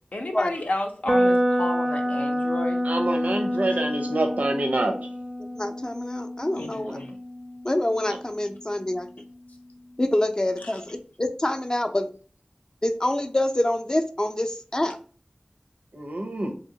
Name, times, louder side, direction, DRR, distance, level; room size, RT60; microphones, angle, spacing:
voice 1, 0.1-2.8 3.7-3.8 6.6-7.1 10.6-10.7, left 2 dB, 85° left, 3 dB, 0.5 m, -32 dB
sound 1, 1.1-9.0, equal, 25° right, 0.4 m, -28 dB
voice 2, 2.8-5.1 15.9-16.5, right 2 dB, 80° right, 4 dB, 0.5 m, -26 dB
voice 3, 5.6-7.0 7.6-9.1 10.0-12.1 12.8-15.0, left 1 dB, 30° left, 6 dB, 0.4 m, -26 dB
2.8 x 2.8 x 2.7 m, 0.41 s
wide cardioid pair, 50°, 3 cm